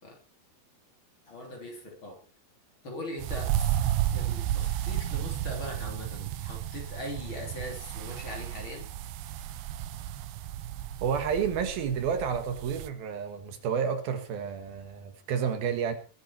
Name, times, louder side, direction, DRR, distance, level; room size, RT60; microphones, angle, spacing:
voice 1, 1.3-2.2 2.8-3.8 4.1-8.9, left 1 dB, 30° left, 0 dB, 3.7 m, -40 dB
sound 1, 3.2-12.9, right 12 dB, 90° right, 2.9 m, -33 dB
voice 2, 11.0-15.9, right 7 dB, 70° right, 7 dB, 3.3 m, -30 dB
21.0 x 9.0 x 4.4 m, 0.36 s
omnidirectional pair, 4.6 m